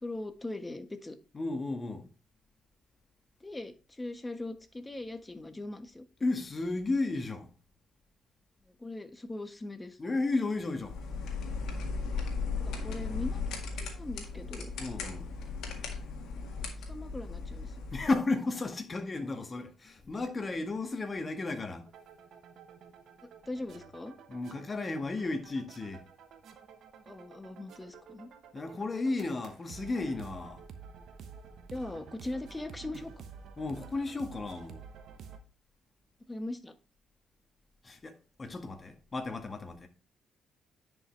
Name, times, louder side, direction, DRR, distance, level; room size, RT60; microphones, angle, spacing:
voice 1, 0.0-1.2 3.4-6.0 8.7-10.0 12.6-13.4 13.8-14.7 16.9-17.8 23.4-24.2 27.1-28.3 31.7-33.1 36.2-36.7, left 2 dB, 20° left, 1.4 m, -40 dB
voice 2, 1.3-2.1 6.2-7.5 10.0-11.0 14.8-15.3 17.9-21.9 24.3-26.0 28.5-30.6 33.6-34.8 37.8-39.9, left 3 dB, 35° left, 1.7 m, -33 dB
sound 1, 10.8-18.1, left 4 dB, 70° left, 1.8 m, -37 dB
sound 2, 21.9-35.4, right 6 dB, 65° right, 1.0 m, -50 dB
9.8 x 5.5 x 3.3 m
hypercardioid pair, 50°, 0 cm